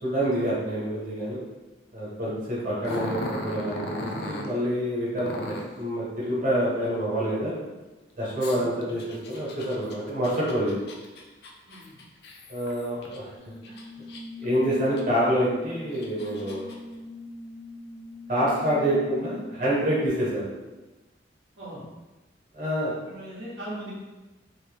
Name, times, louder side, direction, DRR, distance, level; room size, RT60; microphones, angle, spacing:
voice 1, 0.0-1.4 1.9-7.6 8.2-10.8 12.5-13.3 13.7-13.8 14.4-16.8 18.3-20.4 22.5-22.9, equal, 40° right, -7 dB, 1.2 m, -27 dB
Growling, 2.8-4.5 5.2-5.8 8.4-13.2 13.6-14.4 15.0-15.1 15.7-16.8, left 1 dB, 55° left, 0.4 m, -37 dB
voice 2, 8.5-8.8 11.6-12.0 21.6-21.9 23.0-23.9, right 1 dB, 75° right, -8 dB, 1.0 m, -40 dB
sound 1, 13.4-20.1, left 2 dB, 5° left, 0.7 m, -41 dB
3.0 x 2.7 x 3.3 m, 1.1 s
head